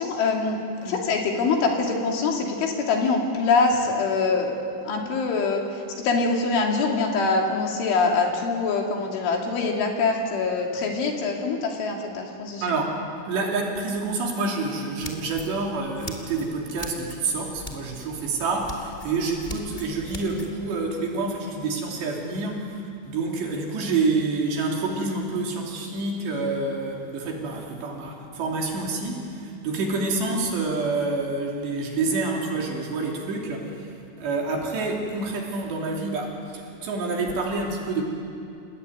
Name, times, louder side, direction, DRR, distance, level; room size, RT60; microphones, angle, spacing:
voice 1, 0.0-4.6 4.8-12.6, left 4 dB, 65° left, 1 dB, 5.1 m, -24 dB
voice 2, 12.6-38.0, right 3 dB, 60° right, 0 dB, 4.8 m, -28 dB
sound 1, 15.0-20.5, left 2 dB, 25° left, 1.0 m, -41 dB
29.0 x 19.5 x 9.4 m, 2.5 s
omnidirectional pair, 6.0 m